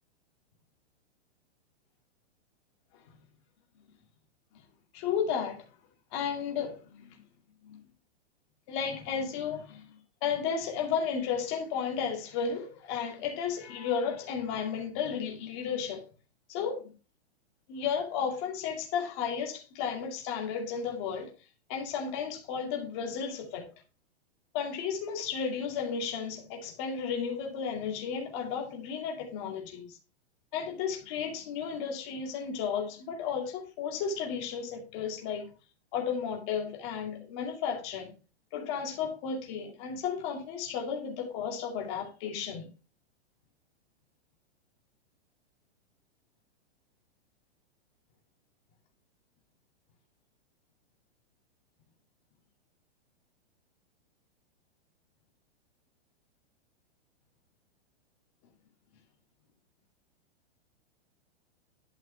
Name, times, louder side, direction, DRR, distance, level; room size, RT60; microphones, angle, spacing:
voice 1, 4.9-5.7 6.1-7.2 7.6-7.8 8.7-16.0 16.5-16.9 17.7-21.3 21.7-23.7 24.5-30.0 30.5-35.5 35.9-38.1 38.5-42.7, left 6 dB, 25° left, 2.3 m, -33 dB
12.0 x 5.7 x 3.4 m
hypercardioid pair, 180°, 33 cm